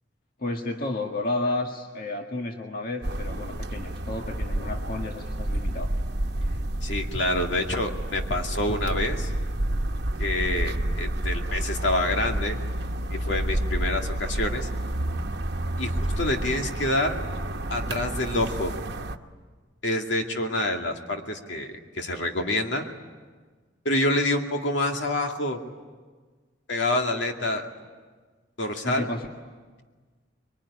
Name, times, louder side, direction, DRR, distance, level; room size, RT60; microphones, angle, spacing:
voice 1, 0.4-5.9 28.8-29.3, left 2 dB, 55° left, 2 dB, 1.8 m, -31 dB
sound 1, 3.0-19.2, right 1 dB, 60° right, 1.1 m, -29 dB
voice 2, 6.8-9.3 10.2-12.6 13.1-14.7 15.8-17.2 17.7-18.8 19.8-22.9 23.8-25.6 26.7-27.7 28.6-29.1, left 1 dB, 75° left, 3 dB, 2.4 m, -27 dB
25.5 x 23.5 x 9.9 m, 1.4 s
head